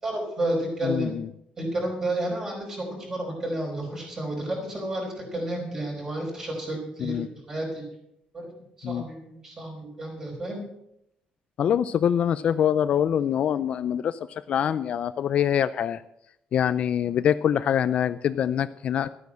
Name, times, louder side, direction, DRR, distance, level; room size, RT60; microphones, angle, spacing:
voice 1, 0.0-1.1 1.6-7.8 8.3-8.5 8.8-10.6, right 1 dB, 20° right, 0 dB, 5.0 m, -31 dB
voice 2, 0.8-1.3 7.0-7.3 8.8-9.0 11.6-16.0 16.5-19.1, left 9 dB, 45° left, 13 dB, 0.4 m, -24 dB
13.0 x 9.2 x 7.5 m, 0.78 s
cardioid pair, 180°, 3 cm